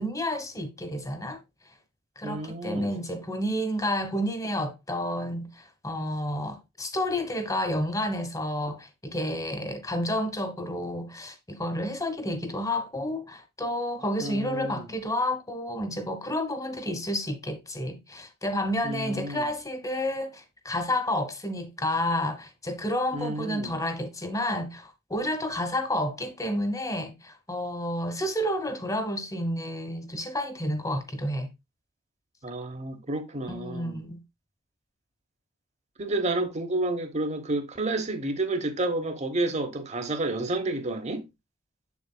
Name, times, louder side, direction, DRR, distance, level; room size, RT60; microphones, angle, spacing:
voice 1, 0.0-1.4 2.2-31.5 33.5-34.2, left 1 dB, 15° left, 1.1 m, -30 dB
voice 2, 2.2-2.9 14.2-14.9 18.8-19.5 23.1-23.7 32.4-34.0 36.0-41.2, right 2 dB, 35° right, 1.0 m, -30 dB
7.4 x 7.1 x 2.2 m
head